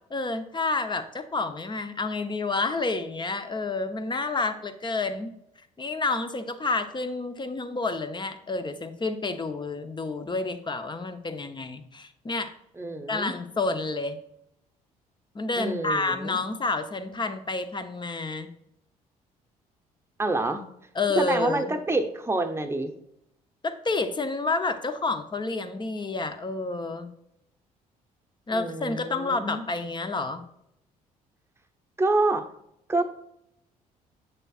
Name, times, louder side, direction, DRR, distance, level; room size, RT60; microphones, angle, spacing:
voice 1, 0.1-5.3 5.8-12.5 13.1-14.2 15.3-18.5 20.9-21.8 23.6-27.1 28.5-30.4, left 3 dB, 25° left, 9 dB, 0.8 m, -29 dB
voice 2, 12.8-13.3 15.6-16.4 20.2-20.6 21.2-22.9 28.5-29.6 32.0-32.4 32.9-33.0, right 2 dB, 15° right, 6 dB, 0.9 m, -27 dB
8.6 x 6.6 x 2.4 m, 0.79 s
figure-of-eight pair, 50°, 19 cm